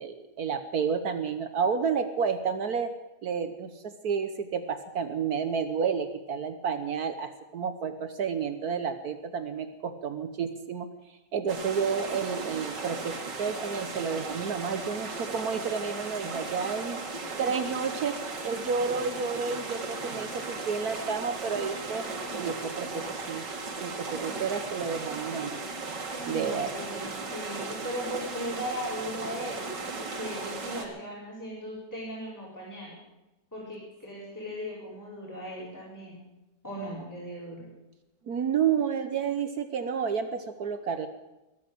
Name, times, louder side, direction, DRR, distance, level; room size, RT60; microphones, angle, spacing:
voice 1, 0.0-2.9 3.2-10.9 11.3-17.0 17.4-18.2 18.4-22.1 22.4-23.4 23.8-25.6 26.3-26.9 38.3-41.1, right 6 dB, 65° right, 9 dB, 1.4 m, -30 dB
sound 1, 11.5-30.9, right 3 dB, 90° right, 2.7 m, -36 dB
voice 2, 26.1-33.0 33.5-36.2 36.6-37.7, equal, 10° left, -6 dB, 4.7 m, -38 dB
22.0 x 8.2 x 7.8 m, 1.0 s
omnidirectional pair, 1.8 m